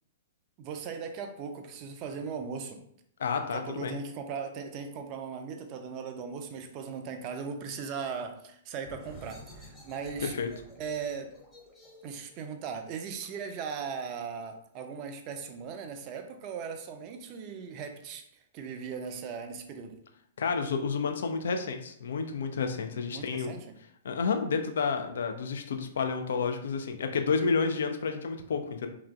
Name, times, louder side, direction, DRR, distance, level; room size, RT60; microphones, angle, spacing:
voice 1, 0.6-2.8 3.5-10.4 10.8-11.4 12.0-18.3 18.5-19.9 23.1-23.6, right 6 dB, 35° right, 6 dB, 0.4 m, -38 dB
voice 2, 3.2-4.0 10.2-10.5 20.4-23.6 24.0-28.9, left 5 dB, 65° left, 5 dB, 0.3 m, -30 dB
sound 1, 8.8-14.2, right 1 dB, 15° left, 0.8 m, -52 dB
3.1 x 2.4 x 2.2 m, 0.69 s
figure-of-eight pair, 110°, 0 cm